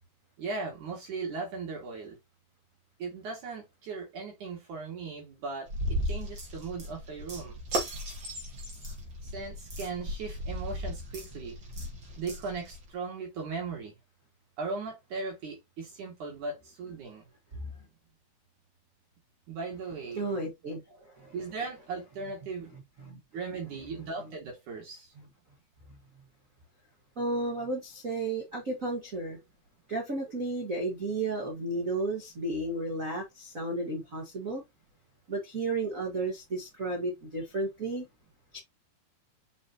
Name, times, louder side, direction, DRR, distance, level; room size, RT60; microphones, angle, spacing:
voice 1, 0.4-2.1 3.0-5.7 6.0-7.6 9.2-11.6 12.2-13.9 14.6-17.2 19.5-20.3 21.3-22.7 23.3-25.1, right 4 dB, 55° right, 3.4 m, -38 dB
sound 1, 5.7-12.9, equal, 35° right, 2.6 m, -36 dB
voice 2, 20.2-20.8 21.2-21.3 23.0-23.2 27.2-29.4 29.9-34.6 35.3-38.0 38.5-38.6, right 2 dB, 85° right, 0.7 m, -33 dB
6.4 x 5.4 x 2.9 m
omnidirectional pair, 4.3 m